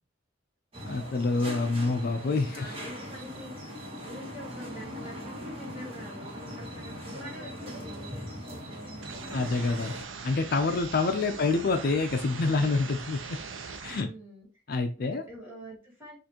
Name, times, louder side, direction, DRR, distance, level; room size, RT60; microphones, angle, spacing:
sound 1, 0.7-10.0, equal, 30° right, 1.2 m, -40 dB
voice 1, 0.8-2.7 9.3-9.9 10.2-13.4 13.8-14.1 14.7-15.2, left 3 dB, 50° left, 7 dB, 0.4 m, -27 dB
voice 2, 2.4-3.8 4.0-9.6 12.4-12.7 13.9-14.5 15.0-16.2, right 1 dB, 10° right, -4 dB, 2.2 m, -46 dB
sound 2, 9.0-14.0, right 5 dB, 90° right, 0.7 m, -41 dB
6.6 x 2.5 x 2.9 m, 0.32 s
head